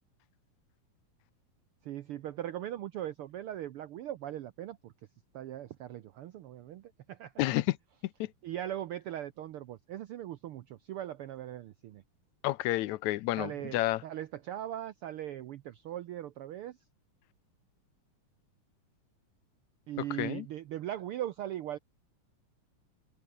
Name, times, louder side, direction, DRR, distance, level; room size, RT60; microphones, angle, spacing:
voice 1, 1.8-4.9 5.3-7.3 8.4-12.0 13.4-16.8 19.9-21.8, right 12 dB, 80° right, 1.2 m, -39 dB
voice 2, 7.4-7.8 8.2-8.3 12.4-14.0 20.2-20.5, left 16 dB, 80° left, 2.0 m, -30 dB
omnidirectional pair, 3.6 m